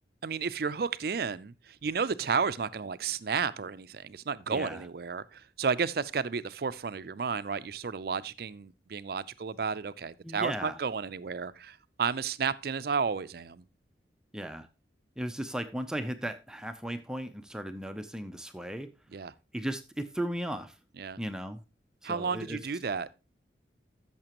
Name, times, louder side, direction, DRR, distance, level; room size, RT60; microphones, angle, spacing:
voice 1, 0.2-13.6 19.1-19.3 21.0-21.2 22.0-23.1, right 5 dB, 55° right, 0.5 m, -32 dB
voice 2, 4.5-4.8 10.2-10.8 14.3-14.7 15.2-18.9 19.5-20.7 21.2-21.6 22.0-22.6, right 1 dB, 5° right, 0.5 m, -36 dB
14.0 x 6.6 x 2.9 m
head